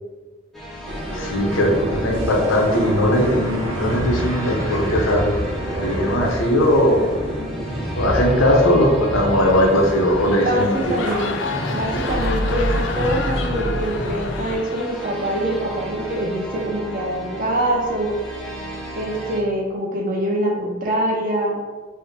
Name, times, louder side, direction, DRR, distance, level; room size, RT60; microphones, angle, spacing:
sound 1, 0.5-19.4, right 1 dB, ahead, 0.5 m, -34 dB
sound 2, 0.8-14.6, equal, 80° right, 1.3 m, -28 dB
voice 1, 1.1-5.5 5.8-7.1 8.0-11.0, equal, 90° left, 0 dB, 0.7 m, -19 dB
sound 3, 9.6-15.6 16.0-16.3, left 4 dB, 65° left, 0.3 m, -31 dB
voice 2, 10.3-11.4 11.7-18.2 18.9-21.6, right 1 dB, 45° right, -1 dB, 0.6 m, -24 dB
3.4 x 2.1 x 4.2 m, 1.3 s
head